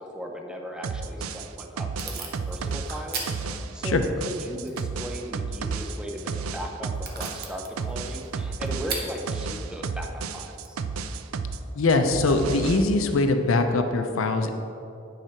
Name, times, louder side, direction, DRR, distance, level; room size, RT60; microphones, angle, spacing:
voice 1, 0.1-10.8, equal, 5° right, 1 dB, 0.6 m, -37 dB
sound 1, 0.8-11.6 11.9-12.8, right 4 dB, 90° right, 0.4 m, -32 dB
Packing tape duct tape / Tearing, 1.1-11.9, right 4 dB, 50° right, 1.1 m, -42 dB
voice 2, 11.8-14.5, left 3 dB, 70° left, 6 dB, 0.6 m, -22 dB
9.2 x 4.9 x 4.4 m, 2.7 s
head